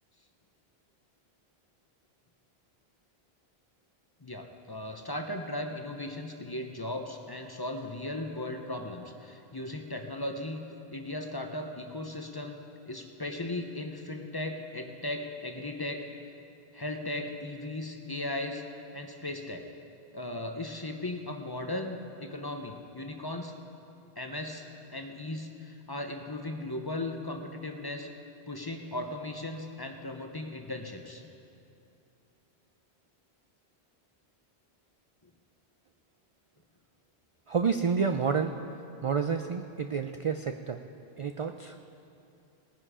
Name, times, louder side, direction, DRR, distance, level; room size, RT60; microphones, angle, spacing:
voice 1, 4.2-10.6 10.9-16.1 16.7-18.6 18.9-19.7 20.1-23.5 24.1-24.6 24.9-28.1 28.5-31.2, left 1 dB, 25° left, 4 dB, 0.8 m, -37 dB
voice 2, 37.5-38.6 39.0-40.8 41.2-41.8, right 6 dB, 55° right, 7 dB, 0.3 m, -29 dB
19.0 x 10.0 x 5.0 m, 2.6 s
omnidirectional pair, 1.1 m